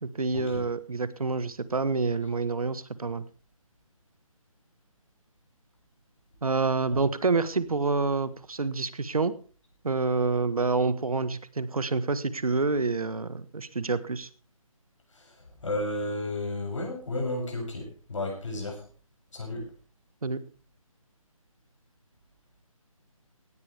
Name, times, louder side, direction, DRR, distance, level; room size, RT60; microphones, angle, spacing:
voice 1, 0.0-3.2 6.4-9.3 9.8-14.3 20.2-20.4, right 3 dB, 80° right, 14 dB, 1.5 m, -27 dB
voice 2, 15.6-18.8 19.3-19.6, left 2 dB, 60° left, 1 dB, 7.8 m, -32 dB
17.5 x 13.5 x 3.5 m, 0.38 s
figure-of-eight pair, 155°, 18 cm